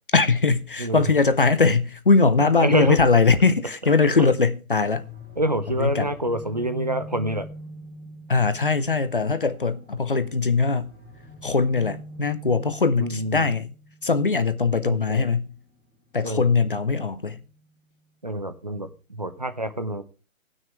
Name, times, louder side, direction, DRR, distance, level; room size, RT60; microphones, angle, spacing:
voice 1, 0.1-5.1 5.8-6.1 8.3-10.9 11.4-13.7 14.0-15.5 16.1-17.4, left 4 dB, 40° left, 0.6 m, -21 dB
voice 2, 2.4-3.0 4.2-4.3 5.4-7.5 13.0-13.5 14.8-15.3 16.2-16.5 18.2-20.0, right 1 dB, 30° right, 0.6 m, -26 dB
sound 1, 4.9-17.7, equal, 5° right, 2.2 m, -44 dB
16.5 x 6.3 x 4.5 m
hypercardioid pair, 180°, 42 cm